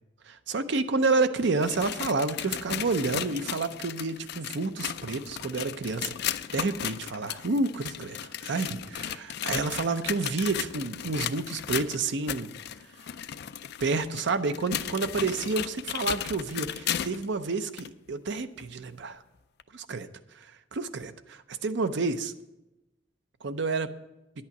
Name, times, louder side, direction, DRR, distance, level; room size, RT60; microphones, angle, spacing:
voice 1, 0.3-12.5 13.8-19.2 19.7-20.1 20.7-22.3 23.4-23.9, right 3 dB, 65° right, 10 dB, 0.6 m, -29 dB
sound 1, 1.4-17.3 17.8-17.9 18.6-18.7 19.6-19.7, left 10 dB, 60° left, 0.4 m, -35 dB
10.5 x 8.6 x 5.9 m, 0.98 s
head